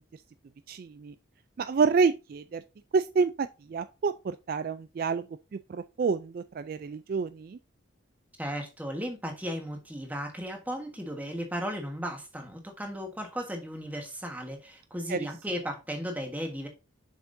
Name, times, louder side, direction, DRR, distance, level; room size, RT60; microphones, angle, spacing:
voice 1, 0.7-1.1 1.6-2.6 2.9-5.2 5.5-7.6 15.1-15.3, right 5 dB, 50° right, 0.3 m, -28 dB
voice 2, 8.4-16.7, equal, 10° right, 1.3 m, -35 dB
7.4 x 5.9 x 2.6 m
head